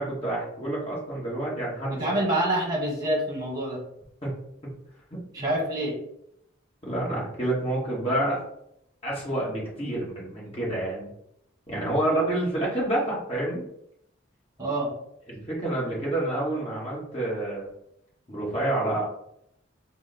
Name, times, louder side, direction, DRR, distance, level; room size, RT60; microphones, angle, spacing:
voice 1, 0.0-2.2 4.2-4.3 5.1-5.5 6.8-8.4 9.0-11.1 11.7-13.7 15.3-17.7 18.3-19.1, right 1 dB, 30° left, -5 dB, 1.2 m, -28 dB
voice 2, 1.9-3.8 5.3-6.0 14.6-14.9, right 1 dB, 20° right, -3 dB, 1.2 m, -26 dB
3.9 x 2.1 x 4.0 m, 0.75 s
head